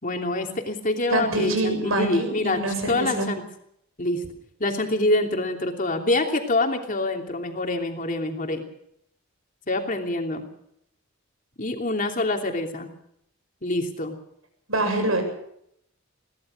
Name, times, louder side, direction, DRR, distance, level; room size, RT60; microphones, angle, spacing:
voice 1, 0.0-2.6 2.9-3.4 4.0-4.2 4.6-8.6 9.7-10.4 11.6-12.9 13.6-14.2, left 2 dB, 40° left, 3 dB, 3.0 m, -26 dB
voice 2, 1.1-3.3 14.7-15.2, right 2 dB, 85° right, 5 dB, 7.3 m, -25 dB
22.0 x 18.0 x 6.6 m, 0.73 s
head